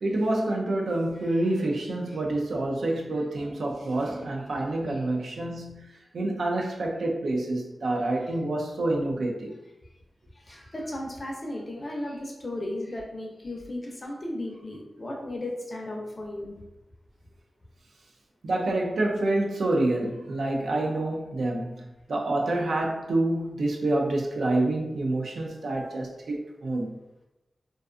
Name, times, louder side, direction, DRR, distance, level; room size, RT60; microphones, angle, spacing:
voice 1, 0.0-5.9 6.1-9.5 18.4-21.7 22.1-26.9, right 2 dB, 85° right, 0.4 m, -27 dB
voice 2, 10.5-16.6, left 1 dB, 30° left, 0.5 m, -35 dB
2.4 x 2.3 x 2.4 m
wide cardioid pair, 135°, 0 cm